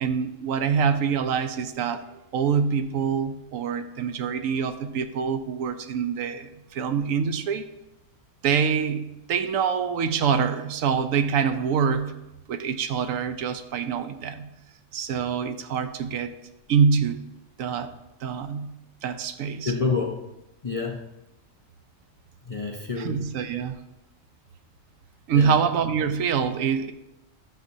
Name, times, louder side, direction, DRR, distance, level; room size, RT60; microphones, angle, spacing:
voice 1, 0.0-7.7 8.4-12.2 12.5-14.5 14.9-16.3 16.7-17.2 17.6-17.9 18.2-18.7 19.0-19.7 23.0-23.8 25.3-26.9, right 6 dB, 80° right, 10 dB, 1.0 m, -25 dB
voice 2, 19.6-20.3 20.6-21.1 22.4-23.2 25.3-25.6, left 4 dB, 40° left, 0 dB, 0.5 m, -28 dB
11.5 x 6.5 x 2.7 m, 0.92 s
omnidirectional pair, 1.4 m